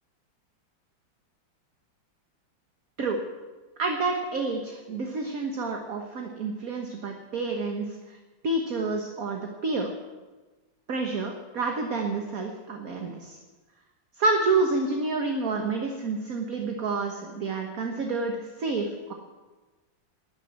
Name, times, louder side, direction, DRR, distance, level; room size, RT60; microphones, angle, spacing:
voice 1, 3.8-8.0 8.4-9.9 10.9-13.4 14.2-19.1, right 3 dB, 50° right, 3 dB, 1.7 m, -29 dB
13.5 x 9.5 x 9.6 m, 1.2 s
omnidirectional pair, 2.1 m